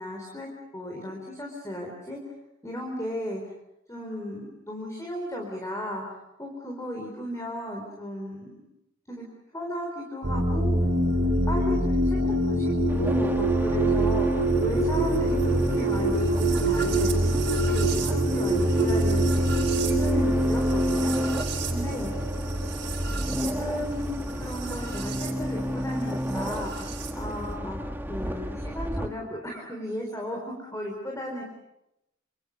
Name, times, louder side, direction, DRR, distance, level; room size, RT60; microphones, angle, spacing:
voice 1, 0.0-2.2 2.6-3.4 3.9-8.5 9.1-9.2 9.5-10.8 11.5-21.1 21.7-22.1 23.3-27.8 28.1-31.4, left 1 dB, 15° left, 0 dB, 4.3 m, -35 dB
sound 1, 10.2-25.3 26.5-27.1, right 1 dB, 60° right, 5.1 m, -25 dB
sound 2, 12.9-29.1, left 1 dB, 10° right, 1.5 m, -31 dB
27.5 x 27.5 x 6.9 m, 0.89 s
head